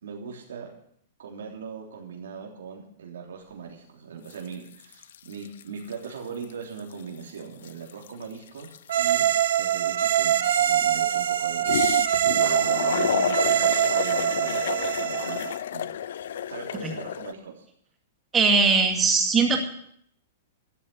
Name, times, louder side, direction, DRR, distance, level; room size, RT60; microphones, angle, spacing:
voice 1, 0.0-0.7 1.2-9.3 9.6-15.9 16.5-17.6, right 6 dB, 85° right, -1 dB, 3.4 m, -40 dB
sound 1, 4.3-4.5 4.8-6.1 6.4-6.5 6.8-9.6 11.7-17.3, left 10 dB, 70° left, 0.6 m, -30 dB
sound 2, 8.9-15.6, right 11 dB, 70° right, 1.2 m, -24 dB
voice 2, 18.3-19.6, right 4 dB, 15° right, 3 dB, 2.3 m, -20 dB
13.0 x 8.5 x 8.5 m, 0.67 s
hypercardioid pair, 155°, 0 cm